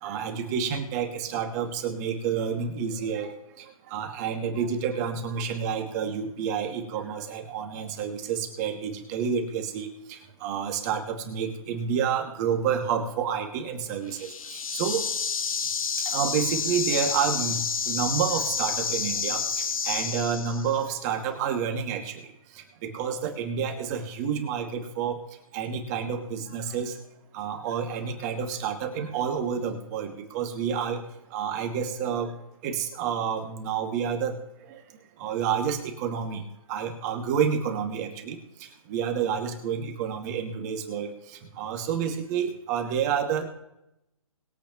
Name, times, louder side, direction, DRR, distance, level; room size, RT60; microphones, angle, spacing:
voice 1, 0.0-15.0 16.0-22.2 22.5-25.2 25.5-27.0 27.3-31.0 31.3-32.3 32.6-34.4 34.7-34.8 35.2-36.4 36.7-43.5, right 7 dB, 30° right, 3 dB, 2.3 m, -29 dB
sound 1, 14.1-20.8, left 6 dB, 70° left, 1.2 m, -29 dB
22.0 x 8.5 x 3.1 m, 0.86 s
hypercardioid pair, 150°, 18 cm